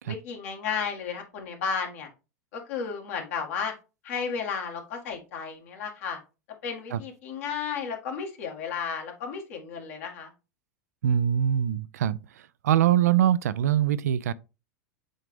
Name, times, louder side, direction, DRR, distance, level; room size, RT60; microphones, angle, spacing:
voice 1, 0.0-2.1 2.5-3.7 4.0-6.2 6.6-10.3, left 6 dB, 60° left, 1.9 m, -33 dB
voice 2, 11.0-14.3, right 10 dB, 70° right, 0.4 m, -23 dB
7.7 x 3.8 x 3.4 m
hypercardioid pair, 90°, 9 cm